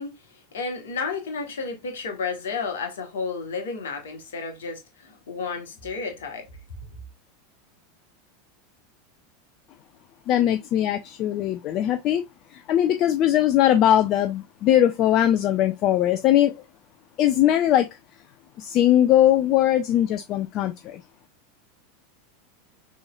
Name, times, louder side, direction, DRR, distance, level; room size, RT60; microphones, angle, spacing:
voice 1, 0.0-6.5, left 4 dB, 65° left, 1.4 m, -32 dB
voice 2, 10.3-12.2 12.5-16.5 17.2-17.9 18.6-21.0, left 12 dB, 40° left, 0.4 m, -20 dB
6.1 x 3.2 x 2.4 m
figure-of-eight pair, 85°, 0 cm